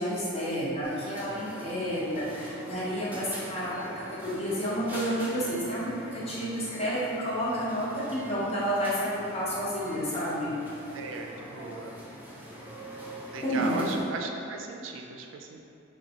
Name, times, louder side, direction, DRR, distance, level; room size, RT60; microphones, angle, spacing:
voice 1, 0.0-10.6 13.4-14.0, equal, 35° left, -8 dB, 0.8 m, -30 dB
sound 1, 0.8-14.1, right 1 dB, 10° right, 0.7 m, -44 dB
voice 2, 10.9-12.0 13.3-15.7, right 3 dB, 75° right, 2 dB, 0.4 m, -37 dB
4.9 x 2.2 x 2.8 m, 2.7 s
head